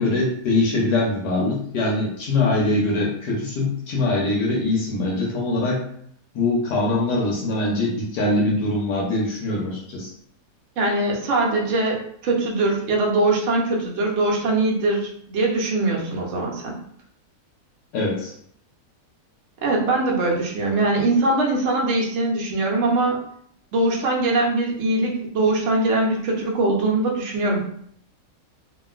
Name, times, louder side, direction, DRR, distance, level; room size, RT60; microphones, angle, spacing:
voice 1, 0.0-5.8 6.3-10.1 17.9-18.3, left 2 dB, 80° left, -3 dB, 1.3 m, -23 dB
voice 2, 10.8-16.8 19.6-23.2 23.7-27.6, right 2 dB, 60° right, -1 dB, 0.8 m, -22 dB
2.8 x 2.4 x 2.3 m, 0.66 s
omnidirectional pair, 1.7 m